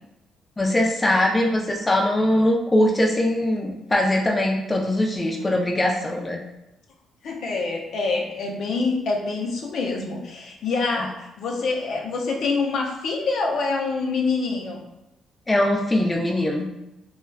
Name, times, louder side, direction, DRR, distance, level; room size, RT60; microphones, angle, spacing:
voice 1, 0.6-6.4 11.0-11.1 15.5-16.7, left 1 dB, 20° left, -1 dB, 0.5 m, -21 dB
voice 2, 7.2-14.8, left 4 dB, 70° left, 0 dB, 0.5 m, -26 dB
3.1 x 2.2 x 2.3 m, 0.88 s
cardioid pair, 90°, 0 cm